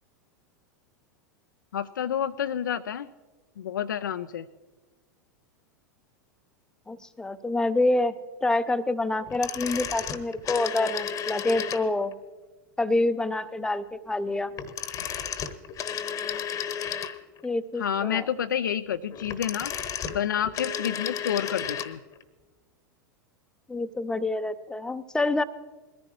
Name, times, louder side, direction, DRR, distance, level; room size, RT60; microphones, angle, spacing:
voice 1, 1.7-3.1 3.6-4.5 17.8-19.7 20.1-22.0, left 9 dB, 75° left, 9 dB, 0.4 m, -29 dB
voice 2, 6.9-8.1 8.4-12.1 12.8-14.5 17.4-18.3 23.7-25.4, left 2 dB, 5° left, 12 dB, 0.6 m, -27 dB
sound 1, 9.3-12.1 14.5-17.4 19.1-22.0 22.2-22.3, left 8 dB, 30° left, 0.9 m, -33 dB
21.0 x 14.0 x 3.0 m, 1.3 s
figure-of-eight pair, 90°, 11 cm